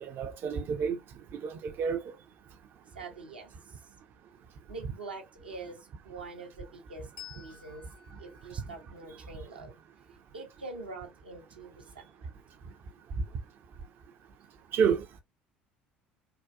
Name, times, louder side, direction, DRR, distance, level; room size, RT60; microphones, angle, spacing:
voice 1, 0.0-1.0 1.3-2.2 14.7-15.2, right 6 dB, 45° right, 0.4 m, -29 dB
voice 2, 2.9-3.8 4.7-7.9 8.2-9.7 10.3-12.3, right 3 dB, 85° right, 0.7 m, -45 dB
Bell, 7.2-10.2, left 9 dB, 75° left, 1.0 m, -53 dB
3.6 x 2.2 x 2.3 m
figure-of-eight pair, 60°, 5 cm